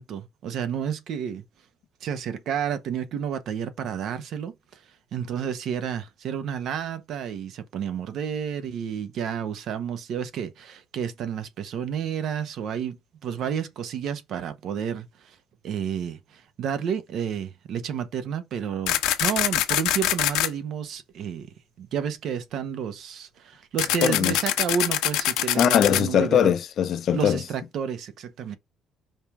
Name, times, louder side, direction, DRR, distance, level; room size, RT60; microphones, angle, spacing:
voice 1, 0.0-1.4 2.0-4.8 5.1-13.0 13.2-15.4 15.6-21.5 21.8-26.5 27.1-28.6, right 8 dB, 55° right, 1.1 m, -31 dB
sound 1, 18.9-20.5 23.8-26.0, left 13 dB, 90° left, 1.1 m, -24 dB
voice 2, 24.0-24.3 25.6-27.4, left 9 dB, 45° left, 0.7 m, -21 dB
5.3 x 3.6 x 5.0 m
cardioid pair, 160°, 0 cm